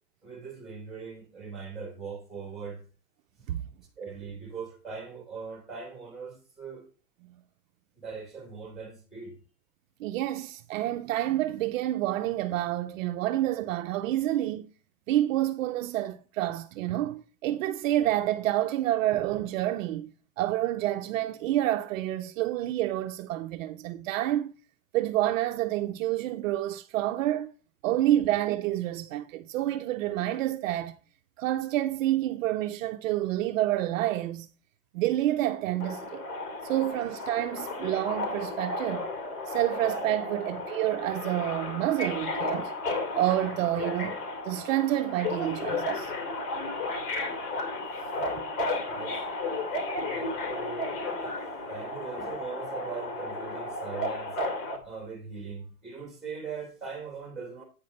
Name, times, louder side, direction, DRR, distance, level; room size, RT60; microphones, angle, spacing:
voice 1, 0.2-2.8 3.4-3.5 4.0-6.8 8.0-9.4 48.1-48.5 48.8-49.2 50.0-51.0 51.7-54.4 54.8-57.6, right 5 dB, ahead, 2.7 m, -40 dB
voice 2, 10.0-14.7 15.1-20.1 20.4-24.5 24.9-27.5 27.8-31.0 31.4-34.5 34.9-36.2 36.6-39.1 39.5-42.7 43.1-44.2 44.4-46.1, right 14 dB, 60° right, 0.6 m, -28 dB
Subway metro underground, 35.8-54.8, left 2 dB, 85° left, 2.7 m, -33 dB
8.7 x 5.4 x 5.1 m
supercardioid pair, 165°, 45 cm